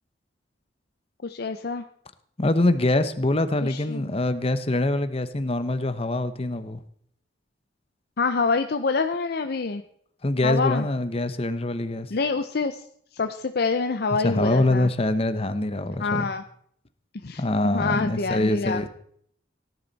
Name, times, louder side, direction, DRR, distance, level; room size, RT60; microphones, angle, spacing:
voice 1, 1.2-1.8 3.6-4.1 8.2-9.8 10.4-10.9 12.1-12.8 13.1-14.9 16.0-16.4 17.2-18.9, left 4 dB, 60° left, 8 dB, 0.6 m, -26 dB
voice 2, 2.4-6.8 10.2-12.1 14.2-16.3 17.4-18.9, left 2 dB, 35° left, 11 dB, 0.9 m, -24 dB
17.5 x 11.0 x 4.1 m, 0.66 s
head